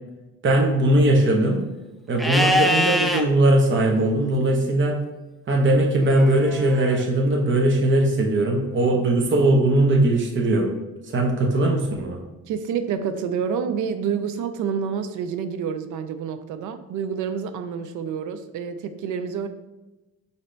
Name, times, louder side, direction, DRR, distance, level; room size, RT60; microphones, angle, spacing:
voice 1, 0.4-1.6 2.1-5.0 5.5-10.7 11.1-12.2, right 1 dB, 40° right, 1 dB, 0.8 m, -20 dB
Livestock farm animals working animals, 2.2-3.2 6.1-7.0, left 1 dB, ahead, 0.3 m, -23 dB
voice 2, 12.5-19.5, right 7 dB, 80° right, 9 dB, 0.5 m, -28 dB
4.9 x 2.8 x 3.2 m, 1.1 s
cardioid pair, 90°, 30 cm